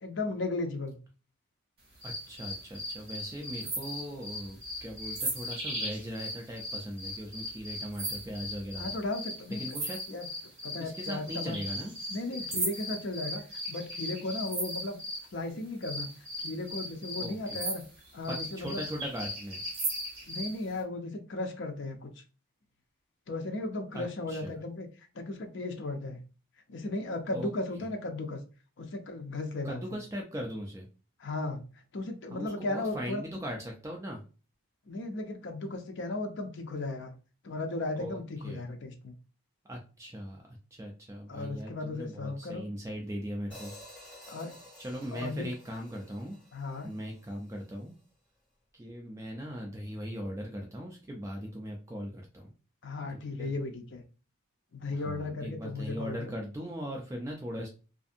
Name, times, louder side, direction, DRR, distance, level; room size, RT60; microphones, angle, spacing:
voice 1, 0.0-1.0 8.8-9.6 10.1-10.3 10.6-11.6 12.1-15.0 15.3-16.1 16.4-17.8 18.1-18.8 20.3-22.1 23.3-24.9 25.1-26.2 26.7-28.4 28.8-30.0 31.2-31.6 31.9-33.2 34.9-37.1 37.4-39.1 41.3-42.6 44.3-44.6 45.1-45.5 46.5-46.9 52.8-54.0 54.7-56.3, left 2 dB, 55° left, 4 dB, 0.5 m, -35 dB
voice 2, 2.0-8.9 9.6-10.0 10.8-11.9 17.2-17.6 18.3-19.6 23.9-24.5 27.3-27.5 29.6-30.9 32.3-34.2 38.0-38.7 39.7-44.3 44.8-46.4 46.8-47.9 48.7-52.5 53.4-53.5 54.9-57.7, equal, 15° right, 0 dB, 0.3 m, -39 dB
sound 1, 2.0-15.3 15.8-20.6, equal, 50° right, 1.5 m, -37 dB
Hi-hat, 43.5-47.7, left 1 dB, 5° left, 1.4 m, -52 dB
2.5 x 2.5 x 2.5 m, 0.35 s
head